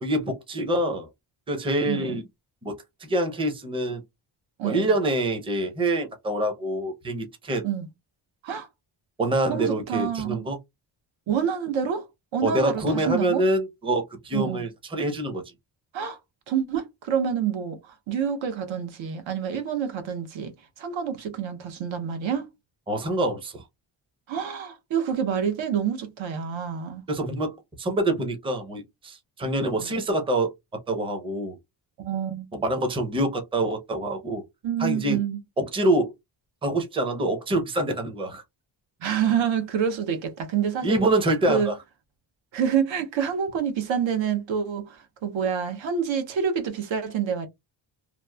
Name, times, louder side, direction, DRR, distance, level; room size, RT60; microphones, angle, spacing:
voice 1, 0.0-1.1 1.5-2.2 2.6-4.0 4.6-7.6 9.2-10.6 12.4-15.4 22.9-23.6 27.1-30.5 30.9-31.6 32.5-34.4 34.8-35.2 35.6-36.1 36.6-38.4 40.8-41.7, right 1 dB, 10° right, 0.5 m, -26 dB
voice 2, 1.9-2.2 4.6-4.9 7.6-7.9 8.4-8.7 9.5-10.5 11.3-13.5 14.3-14.6 15.9-16.2 16.5-22.5 24.3-27.0 29.8-30.0 32.0-32.5 34.6-35.4 39.0-41.0 41.5-41.7 42.5-47.5, right 7 dB, 75° right, 0.8 m, -27 dB
2.9 x 2.0 x 2.2 m
wide cardioid pair, 135°, 46 cm